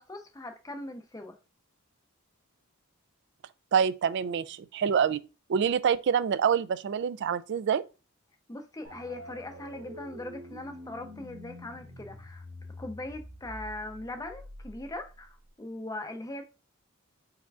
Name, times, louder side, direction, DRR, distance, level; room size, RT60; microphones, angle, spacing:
voice 1, 0.0-1.4 8.5-12.4 12.8-16.4, left 2 dB, 15° left, 0.5 m, -40 dB
voice 2, 3.7-5.2 5.5-7.8, right 7 dB, 50° right, 0.3 m, -26 dB
sound 1, 8.8-15.5, left 1 dB, 90° right, 1.6 m, -47 dB
4.7 x 4.2 x 2.3 m
head